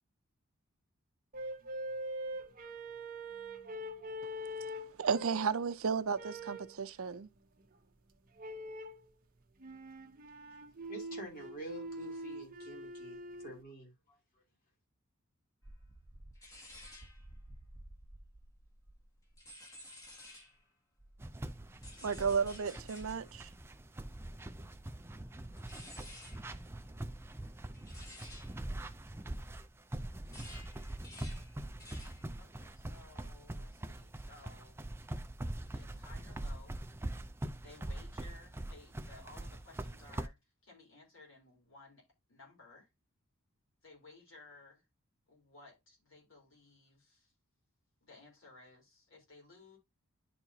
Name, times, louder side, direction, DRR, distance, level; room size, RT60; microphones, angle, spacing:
sound 1, 1.3-5.6 6.1-6.8 8.4-9.0 9.6-13.6, equal, 40° right, 0.8 m, -43 dB
voice 1, 5.0-7.3 22.0-23.5, right 5 dB, 65° right, 0.5 m, -33 dB
voice 2, 10.9-14.2, right 1 dB, 40° left, 2.9 m, -48 dB
sound 2, 15.6-20.6 21.0-29.7 30.0-32.3 32.6-33.0, equal, 15° left, 1.5 m, -54 dB
sound 3, 21.2-40.3, right 1 dB, 10° right, 0.4 m, -43 dB
voice 3, 31.1-31.5 32.4-34.8 35.7-36.8 37.6-42.9 43.8-44.8 45.3-47.3 48.0-49.8, left 3 dB, 60° left, 3.9 m, -58 dB
10.5 x 4.4 x 2.8 m
head